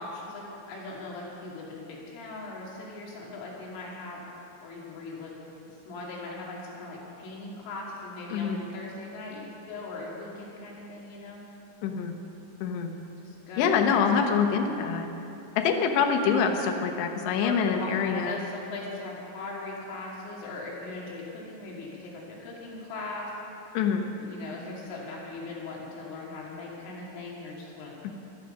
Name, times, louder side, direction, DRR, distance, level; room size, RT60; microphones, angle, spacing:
voice 1, 0.0-4.2 4.6-5.3 5.9-11.4 13.2-14.2 17.4-23.3 24.2-28.2, left 2 dB, 90° left, -4 dB, 5.2 m, -39 dB
voice 2, 8.3-8.6 11.8-12.1 12.6-12.9 13.6-15.1 15.6-18.4 23.7-24.1, left 6 dB, 70° left, 5 dB, 3.0 m, -25 dB
17.5 x 13.5 x 5.6 m, 2.9 s
omnidirectional pair, 5.6 m